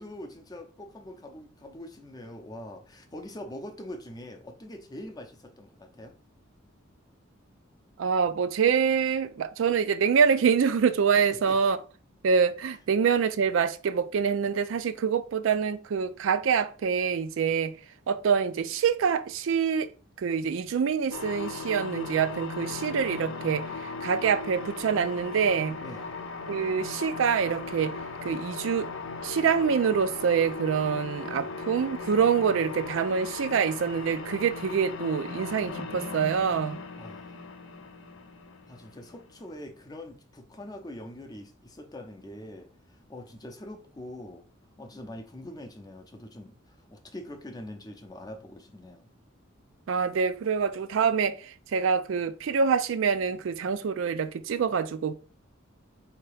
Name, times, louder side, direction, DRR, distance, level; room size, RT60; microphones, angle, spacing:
voice 1, 0.0-6.2 11.1-11.6 25.8-26.0 37.0-37.3 38.7-44.4 44.8-49.1, left 1 dB, 20° left, 0.6 m, -43 dB
voice 2, 8.0-11.8 12.2-17.7 18.1-19.9 20.2-25.8 26.5-28.9 29.2-36.8 49.9-55.1, right 6 dB, 70° right, 0.4 m, -26 dB
sound 1, 21.1-39.4, left 4 dB, 70° left, 0.6 m, -38 dB
4.5 x 2.8 x 3.3 m
head